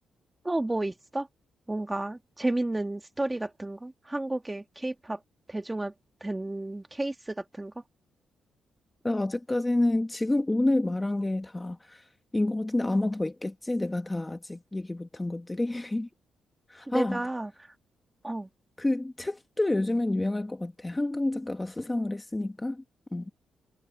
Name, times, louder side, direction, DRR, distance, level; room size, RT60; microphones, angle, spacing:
voice 1, 0.5-1.3 1.7-5.2 5.5-5.9 6.2-7.7 16.9-17.5 18.2-18.5, right 2 dB, 10° right, 1.6 m, -32 dB
voice 2, 9.0-12.0 12.3-16.1 16.7-17.2 18.8-22.8 23.1-23.3, left 2 dB, 10° left, 1.1 m, -28 dB
cardioid pair, 145°, 0 cm